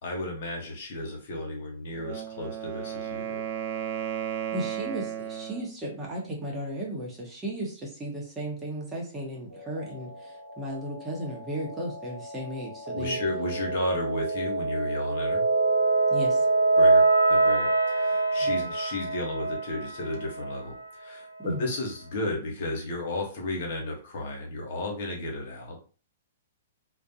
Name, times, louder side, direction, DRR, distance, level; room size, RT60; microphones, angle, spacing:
voice 1, 0.0-3.4 12.9-15.4 16.8-17.0 17.3-25.8, left 2 dB, 60° left, 0 dB, 0.9 m, -33 dB
Wind instrument woodwind instrument, 1.9-5.7, right 10 dB, 45° right, 0.5 m, -34 dB
voice 2, 4.5-13.2 16.1-16.5 18.4-18.5 21.4-21.7, right 1 dB, 15° right, -2 dB, 0.9 m, -35 dB
sound 1, 9.5-20.8, right 3 dB, 85° right, 0.8 m, -26 dB
2.4 x 2.1 x 2.7 m, 0.37 s
hypercardioid pair, 130°, 0 cm